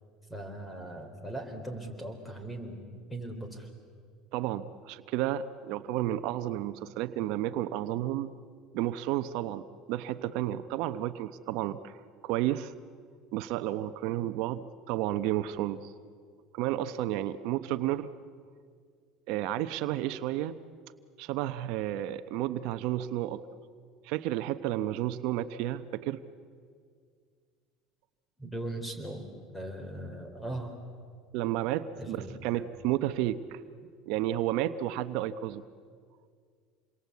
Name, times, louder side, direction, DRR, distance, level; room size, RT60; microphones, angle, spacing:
voice 1, 0.3-2.8 3.1-3.7 28.4-29.3 29.5-30.7 32.0-32.6, right 1 dB, 10° left, 6 dB, 4.1 m, -39 dB
voice 2, 4.3-8.3 8.7-12.0 12.2-12.7 13.3-15.9 16.5-18.1 19.3-20.6 21.2-23.4 24.0-26.2 31.3-33.6 34.1-35.6, right 13 dB, 70° right, 11 dB, 0.9 m, -32 dB
28.0 x 22.5 x 8.4 m, 2.1 s
supercardioid pair, 125°, 0 cm